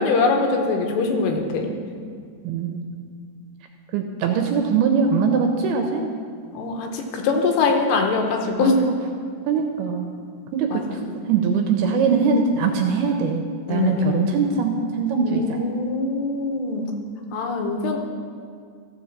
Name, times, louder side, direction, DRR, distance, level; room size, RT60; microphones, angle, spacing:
voice 1, 0.0-1.7 6.5-8.8 10.7-11.0 13.7-14.3 15.2-16.9 17.3-18.0, left 4 dB, 75° left, 3 dB, 3.0 m, -23 dB
voice 2, 2.4-2.9 3.9-6.1 8.6-9.0 9.5-10.1 10.5-11.0 11.3-13.4 13.7-15.7, right 5 dB, 80° right, 4 dB, 2.4 m, -22 dB
15.0 x 5.1 x 7.2 m, 2.1 s
omnidirectional pair, 5.0 m